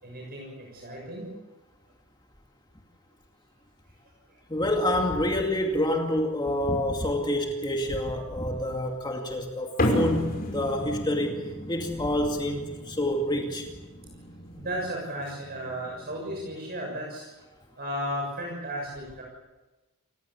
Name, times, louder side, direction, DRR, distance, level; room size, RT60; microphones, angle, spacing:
voice 1, 0.0-1.3 14.6-17.3 17.8-19.2, equal, 45° right, -2 dB, 6.8 m, -34 dB
voice 2, 4.5-11.4 11.7-13.7, left 1 dB, 20° left, 2 dB, 2.4 m, -27 dB
sound 1, 9.8-16.5, left 1 dB, 45° left, 5.8 m, -33 dB
29.0 x 16.5 x 8.4 m, 1.1 s
head